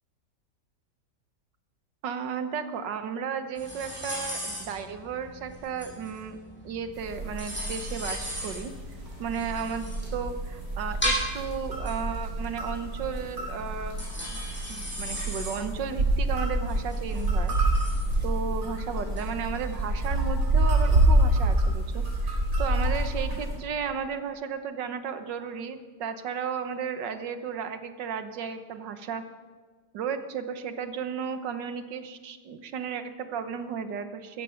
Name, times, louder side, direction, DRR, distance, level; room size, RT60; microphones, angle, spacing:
voice 1, 2.0-6.4 6.6-8.7 9.2-14.0 14.3-14.4 14.7-17.6 18.2-29.3 29.9-34.4, right 6 dB, 90° right, 9 dB, 1.7 m, -34 dB
sound 1, 3.6-20.6, equal, 5° left, 7.0 m, -37 dB
sound 2, 7.0-23.6, right 1 dB, 70° right, 4.6 m, -27 dB
17.0 x 14.0 x 5.8 m, 1.5 s
omnidirectional pair, 1.9 m